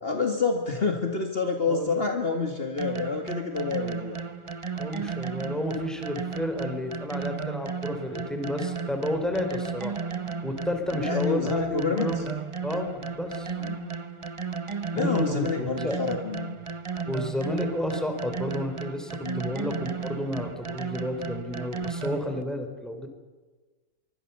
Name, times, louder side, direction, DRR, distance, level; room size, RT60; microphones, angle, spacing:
voice 1, 0.0-4.2 11.1-12.2 13.6-14.0 14.9-16.6 19.2-19.5, left 4 dB, 40° left, 4 dB, 2.2 m, -28 dB
voice 2, 1.7-2.0 4.8-10.0 10.4-12.3 12.6-13.5 15.0-16.0 17.1-23.1, left 1 dB, ahead, 4 dB, 3.6 m, -31 dB
sound 1, 2.8-22.4, right 5 dB, 25° right, 0.9 m, -34 dB
25.0 x 24.0 x 6.9 m, 1.3 s
omnidirectional pair, 1.6 m